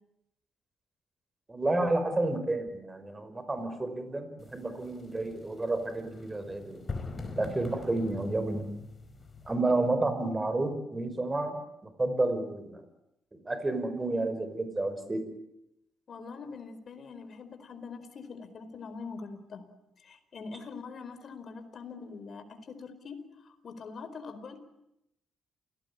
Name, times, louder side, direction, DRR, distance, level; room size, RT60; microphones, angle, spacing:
voice 1, 1.5-6.8 7.4-8.7 9.5-11.6 12.0-12.8 13.4-15.3, right 2 dB, 20° right, 9 dB, 5.4 m, -30 dB
sound 1, 4.4-9.5, left 3 dB, 30° left, 5.1 m, -43 dB
voice 2, 16.1-19.7 20.0-24.6, left 4 dB, 50° left, 10 dB, 4.5 m, -43 dB
28.5 x 18.5 x 9.9 m, 0.85 s
cardioid pair, 90°, 0 cm